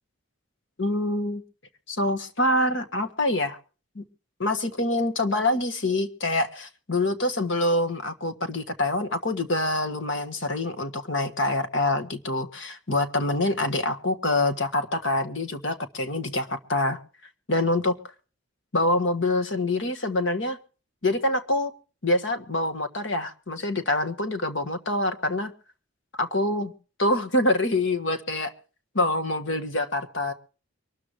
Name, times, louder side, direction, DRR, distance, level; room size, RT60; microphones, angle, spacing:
voice 1, 0.8-1.4 1.9-3.6 3.9-4.0 4.4-17.0 17.5-18.0 18.7-20.6 21.0-21.7 22.0-25.5 26.2-26.7 27.0-28.5 28.9-30.3, left 2 dB, 65° left, 8 dB, 1.5 m, -25 dB
24.0 x 13.0 x 3.0 m, 0.37 s
head